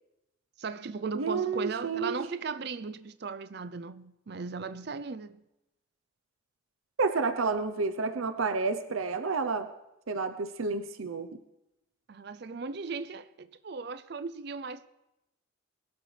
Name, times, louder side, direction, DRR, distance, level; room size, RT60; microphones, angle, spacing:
voice 1, 0.6-5.4 12.1-14.9, right 4 dB, 50° right, 0.5 m, -37 dB
voice 2, 1.1-2.2 7.0-9.7 10.1-11.3, right 4 dB, 85° right, 0.7 m, -30 dB
22.0 x 12.5 x 3.3 m
head